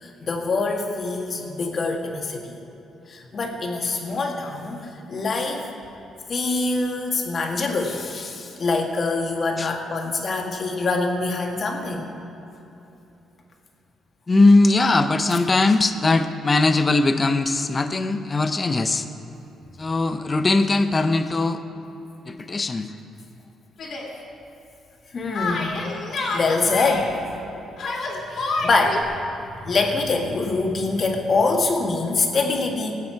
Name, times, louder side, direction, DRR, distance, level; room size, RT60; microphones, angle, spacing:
voice 1, 0.0-2.6 3.1-5.7 6.3-12.1 25.1-25.8 26.3-27.1 28.3-29.1 29.6-32.9, left 3 dB, 45° left, 1 dB, 1.8 m, -24 dB
voice 2, 14.3-19.1 19.8-21.6 22.3-22.9, left 2 dB, 30° left, 9 dB, 0.7 m, -20 dB
Yell, 23.8-24.1 25.3-27.0 27.8-29.0, left 3 dB, 65° left, 2.5 m, -28 dB
19.0 x 8.3 x 4.6 m, 3.0 s
cardioid pair, 90°, 0 cm